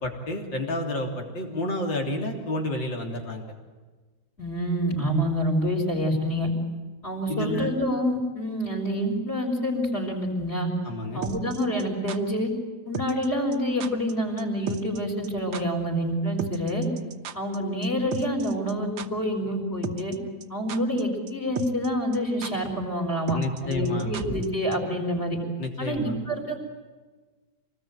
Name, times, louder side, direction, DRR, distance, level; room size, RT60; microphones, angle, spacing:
voice 1, 0.0-3.5 7.3-7.7 10.8-11.2 23.3-24.1 25.6-26.2, left 1 dB, 80° left, 2 dB, 4.1 m, -30 dB
voice 2, 4.4-6.5 7.0-10.7 11.1-12.5 12.8-16.9 17.3-20.1 20.5-25.4 25.8-26.6, equal, 35° left, 1 dB, 5.1 m, -27 dB
sound 1, 11.2-12.2 12.9-13.3 13.5-13.6 13.8-14.1 14.4-14.5 14.7-15.0 15.2-15.3 15.5-15.6 16.4-17.6 17.8-17.9 18.1-18.7 19.0-19.1 19.8-20.2 20.4-21.0 21.3-21.4 21.6-21.9 22.1-22.2 22.4-22.5 23.3-24.5 24.7-24.8, right 6 dB, 85° right, 1.9 m, -34 dB
26.0 x 20.0 x 9.1 m, 1.3 s
omnidirectional pair, 2.0 m